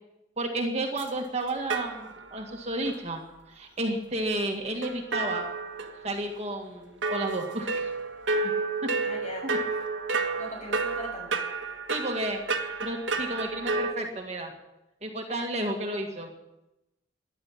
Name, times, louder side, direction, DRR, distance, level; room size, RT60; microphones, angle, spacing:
voice 1, 0.4-3.2 3.5-5.5 6.0-7.9 8.4-8.5 8.8-8.9 9.4-9.6 11.9-12.4 12.8-14.5 15.0-16.3, right 1 dB, 35° right, 2 dB, 1.9 m, -32 dB
sound 1, 1.0-1.1 1.7-2.5 2.8-2.9 4.8-6.4 7.0-13.9, right 3 dB, 80° right, 1.6 m, -31 dB
voice 2, 9.0-9.5 10.1-11.4, equal, 35° left, 1 dB, 6.7 m, -40 dB
14.0 x 11.0 x 8.7 m, 0.93 s
head